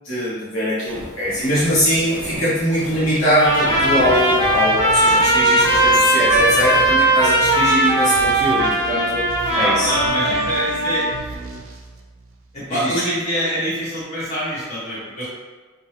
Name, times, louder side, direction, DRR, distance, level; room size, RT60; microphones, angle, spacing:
voice 1, 0.0-9.3 9.5-9.9 10.2-10.4 12.7-13.0, equal, 65° left, -10 dB, 0.9 m, -21 dB
sound 1, 0.9-6.9, right 1 dB, 35° right, 1.2 m, -35 dB
Trumpet, 3.3-11.2, right 1 dB, 15° left, 0.8 m, -18 dB
sound 2, 3.7-12.6, right 3 dB, 65° right, 0.4 m, -36 dB
voice 2, 9.5-11.1 12.5-15.3, equal, 30° left, -9 dB, 1.2 m, -25 dB
2.7 x 2.2 x 3.3 m, 1.4 s
head